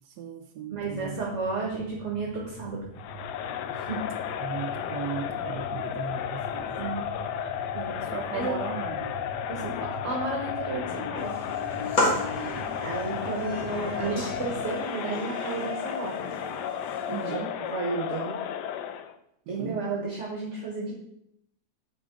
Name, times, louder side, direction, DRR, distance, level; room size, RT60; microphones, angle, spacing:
voice 1, 0.0-1.2 4.4-7.1 8.0-9.2 12.1-12.9 17.1-17.5 19.5-19.8, right 7 dB, 85° right, 7 dB, 1.2 m, -37 dB
sound 1, 0.7-14.6, right 2 dB, 20° left, 3.0 m, -44 dB
voice 2, 0.7-2.8 3.7-4.1 6.8-7.0 7.7-8.0 8.3-8.5 9.5-11.3 12.8-16.2 17.1-18.3 19.5-20.9, right 3 dB, 50° right, -3 dB, 1.5 m, -32 dB
Crowd, 3.0-19.1, left 9 dB, 90° left, 1.2 m, -33 dB
sound 2, 11.1-17.3, left 1 dB, 60° left, 2.1 m, -34 dB
8.6 x 4.5 x 3.7 m, 0.76 s
omnidirectional pair, 1.7 m